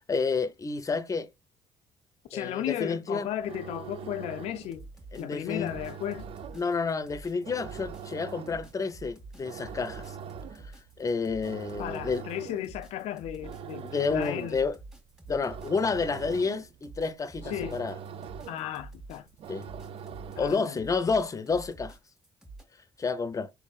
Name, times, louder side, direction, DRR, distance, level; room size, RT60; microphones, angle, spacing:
voice 1, 0.1-1.3 2.3-3.3 5.1-5.7 6.5-10.2 11.0-12.2 13.8-14.7 15.3-17.9 19.5-19.6 20.4-21.9 23.0-23.5, left 4 dB, 30° left, 0.7 m, -30 dB
voice 2, 2.3-4.9 5.2-6.3 11.8-14.6 17.4-17.8 18.5-19.3 20.4-20.8, left 12 dB, 75° left, 0.4 m, -35 dB
sound 1, 3.3-20.8, right 8 dB, 60° right, 0.4 m, -44 dB
sound 2, 4.6-22.6, right 2 dB, 5° right, 1.7 m, -48 dB
4.6 x 3.6 x 2.4 m
supercardioid pair, 60°, 11 cm